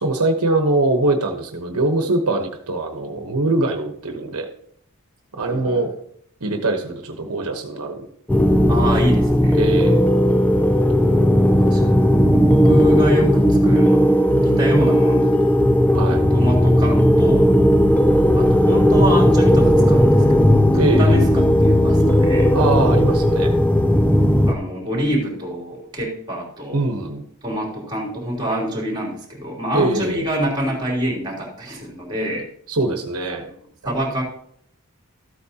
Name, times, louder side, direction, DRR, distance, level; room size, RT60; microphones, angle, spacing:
voice 1, 0.0-4.5 5.3-5.9 6.4-8.1 9.5-10.1 15.9-16.2 20.8-21.3 22.5-23.5 26.7-27.2 29.7-30.2 32.7-33.5, right 2 dB, 80° right, 4 dB, 1.1 m, -22 dB
voice 2, 5.4-5.8 8.7-9.6 11.7-12.0 12.5-15.7 16.0-17.5 18.3-22.5 24.5-26.8 27.4-32.5 33.5-33.6 33.9-34.2, equal, 20° right, -2 dB, 3.5 m, -26 dB
sound 1, 8.3-24.5, equal, 5° left, 0.5 m, -15 dB
14.0 x 8.5 x 2.9 m, 0.65 s
head